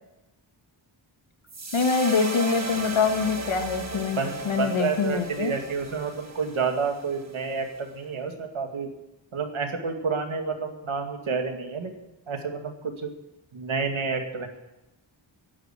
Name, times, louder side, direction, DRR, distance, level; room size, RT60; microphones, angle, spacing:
sound 1, 1.5-7.8, right 2 dB, 35° right, 1.9 m, -36 dB
voice 1, 1.7-5.5, left 5 dB, 80° left, 6 dB, 1.8 m, -25 dB
voice 2, 4.2-8.9 9.3-11.9 12.3-13.1 13.5-14.5, right 5 dB, 80° right, 4 dB, 2.3 m, -29 dB
11.0 x 9.4 x 9.0 m, 0.92 s
wide cardioid pair, 125°, 48 cm